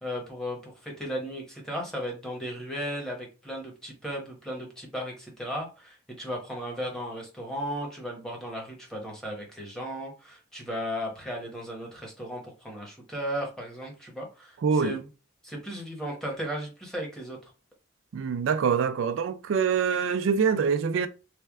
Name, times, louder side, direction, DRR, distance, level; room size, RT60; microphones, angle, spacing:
voice 1, 0.0-15.1 15.4-17.4, equal, 5° left, 1.0 m, -35 dB
voice 2, 14.6-14.9 18.1-21.1, right 6 dB, 75° right, 0.3 m, -25 dB
3.3 x 2.2 x 3.5 m
head